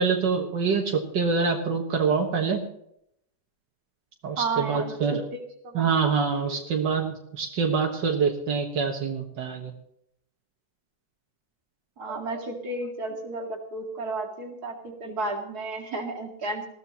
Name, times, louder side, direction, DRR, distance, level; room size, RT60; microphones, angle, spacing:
voice 1, 0.0-2.6 4.2-5.2 5.8-9.7, right 5 dB, 85° right, 1 dB, 2.1 m, -25 dB
voice 2, 4.4-5.9 6.4-6.7 12.0-16.7, right 3 dB, 60° right, 1 dB, 2.7 m, -33 dB
20.0 x 15.0 x 3.0 m, 0.74 s
omnidirectional pair, 1.9 m